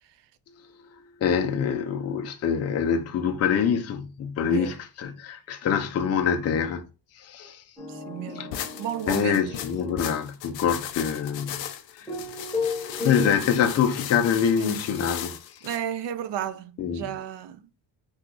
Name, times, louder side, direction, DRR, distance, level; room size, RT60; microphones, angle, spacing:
voice 1, 1.2-6.8 7.2-7.6 8.3-8.5 9.1-11.7 12.0-12.1 13.0-15.4 16.8-17.1, left 7 dB, 35° left, 0.4 m, -25 dB
voice 2, 4.4-4.7 7.9-9.5 14.6-14.8 15.6-17.6, right 10 dB, 70° right, 0.5 m, -33 dB
sound 1, 7.8-10.0 12.1-13.4, left 4 dB, 5° left, 0.9 m, -33 dB
sound 2, 8.5-15.8, left 10 dB, 85° left, 0.6 m, -37 dB
2.9 x 2.3 x 3.7 m
cardioid pair, 160°, 45 cm